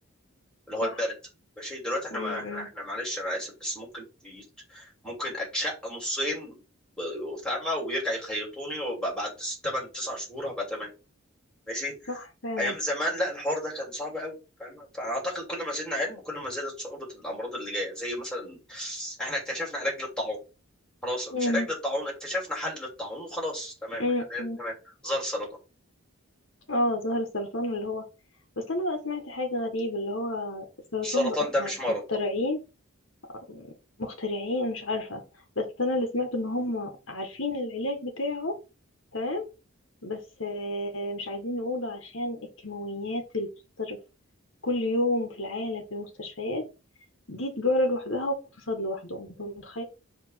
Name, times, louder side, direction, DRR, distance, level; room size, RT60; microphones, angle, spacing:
voice 1, 0.7-1.1 1.6-4.4 4.7-6.6 7.0-10.9 11.7-12.2 12.6-14.3 14.6-20.4 21.0-24.7 25.0-25.5 31.0-32.0, left 1 dB, 5° left, -3 dB, 3.1 m, -32 dB
voice 2, 2.1-2.7 12.1-12.8 21.3-21.7 24.0-24.6 26.7-28.0 28.6-30.7 30.9-31.7 32.1-32.6 33.5-33.7 34.0-35.2 35.5-38.6 39.1-39.4 40.0-43.5 43.8-44.0 44.6-46.7 47.3-48.4 48.7-49.8, left 1 dB, 60° left, 4 dB, 1.6 m, -30 dB
5.1 x 3.6 x 5.7 m, 0.29 s
head